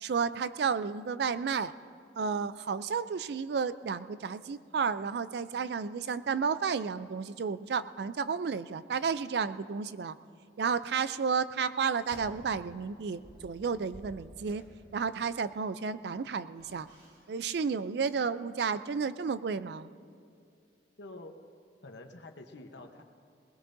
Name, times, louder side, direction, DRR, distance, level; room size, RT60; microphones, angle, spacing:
voice 1, 0.0-1.7 2.1-10.2 10.6-14.6 14.9-16.9 17.3-19.9, right 5 dB, 65° right, 14 dB, 0.4 m, -32 dB
sound 1, 12.0-12.8 13.1-15.2 16.5-17.5 17.7-17.9, equal, 45° right, 2.7 m, -53 dB
voice 2, 21.0-21.3 21.8-23.0, left 2 dB, 75° left, 5 dB, 1.0 m, -47 dB
20.5 x 20.0 x 2.6 m, 2.4 s
head